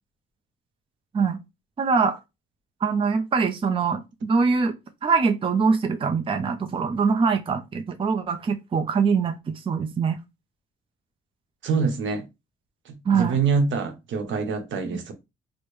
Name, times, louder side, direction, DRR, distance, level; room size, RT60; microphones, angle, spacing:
voice 1, 1.8-2.2 2.8-4.7 5.0-9.3 9.7-10.2 13.1-13.3, right 5 dB, 25° right, 0.5 m, -23 dB
voice 2, 11.6-12.2 12.8-15.1, right 5 dB, 70° right, 0.8 m, -25 dB
4.4 x 2.1 x 3.1 m
cardioid pair, 90°, 20 cm